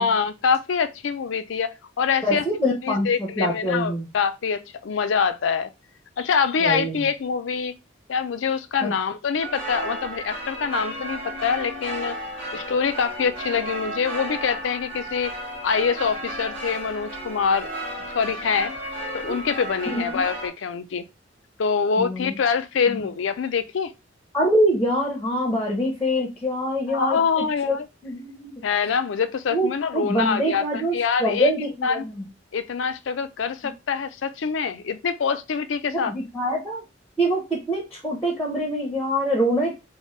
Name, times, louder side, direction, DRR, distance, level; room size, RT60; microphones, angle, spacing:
voice 1, 0.0-5.7 6.2-7.8 8.1-12.2 12.5-15.3 15.6-17.8 18.1-18.7 19.1-21.1 21.6-23.9 26.9-27.9 28.6-31.5 31.8-32.1 32.5-36.1, left 6 dB, 75° left, 0.4 m, -25 dB
voice 2, 2.2-4.1 6.6-7.1 8.8-8.9 19.3-19.4 19.9-20.2 22.0-22.3 22.9-23.0 24.3-27.8 28.0-28.5 29.5-32.2 35.9-36.8 37.2-39.7, equal, 5° left, 0.7 m, -25 dB
sound 1, 9.4-20.5, right 1 dB, 30° right, 1.4 m, -33 dB
4.2 x 2.1 x 3.1 m
head